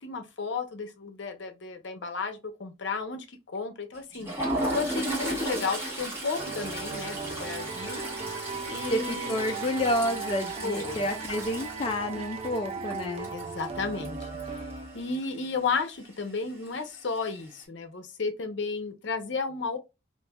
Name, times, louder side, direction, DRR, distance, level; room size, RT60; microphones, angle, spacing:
voice 1, 0.0-8.0 8.6-9.4 10.6-11.0 13.3-14.7 14.9-19.8, left 4 dB, 60° left, 0.6 m, -33 dB
Toilet flush, 3.9-14.7 15.0-15.2 15.5-15.7 16.7-17.2, right 1 dB, 15° right, 1.5 m, -35 dB
sound 1, 6.4-15.3, right 4 dB, 30° right, 0.5 m, -37 dB
voice 2, 8.9-13.3, left 1 dB, 25° left, 0.3 m, -29 dB
3.0 x 2.5 x 2.2 m
head